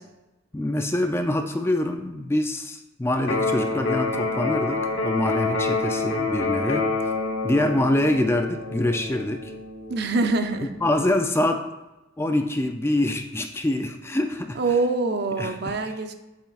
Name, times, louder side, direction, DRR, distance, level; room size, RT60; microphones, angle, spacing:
voice 1, 0.5-6.9 7.4-9.5 10.8-11.6 12.2-14.6 15.4-15.8, left 1 dB, 10° left, 5 dB, 0.4 m, -25 dB
Electric guitar, 3.2-11.2, left 3 dB, 85° left, 1.0 m, -28 dB
voice 2, 9.9-10.7 14.6-16.1, right 3 dB, 55° right, 7 dB, 0.6 m, -24 dB
8.1 x 7.2 x 2.4 m, 1.0 s
head